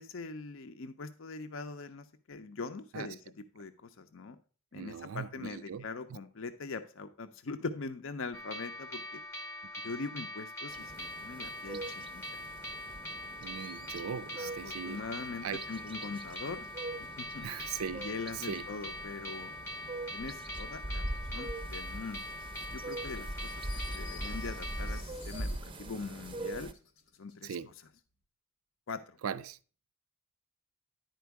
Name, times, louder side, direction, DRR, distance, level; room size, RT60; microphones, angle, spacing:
voice 1, 0.0-4.4 4.7-9.2 9.8-12.2 14.4-16.7 17.0-17.5 17.9-19.5 20.1-22.3 22.7-26.7 27.2-27.6 28.9-29.2, left 4 dB, 65° left, 0.6 m, -42 dB
voice 2, 4.7-5.8 13.4-15.0 15.4-15.6 17.4-18.0 18.4-18.6 27.4-27.7 29.2-29.6, right 7 dB, 80° right, 0.4 m, -39 dB
sound 1, 8.3-25.0, left 1 dB, 10° left, 0.7 m, -43 dB
sound 2, 10.7-26.7, right 1 dB, 25° right, 0.5 m, -42 dB
sound 3, 23.4-27.4, left 8 dB, 85° left, 1.0 m, -54 dB
10.5 x 4.5 x 4.5 m
head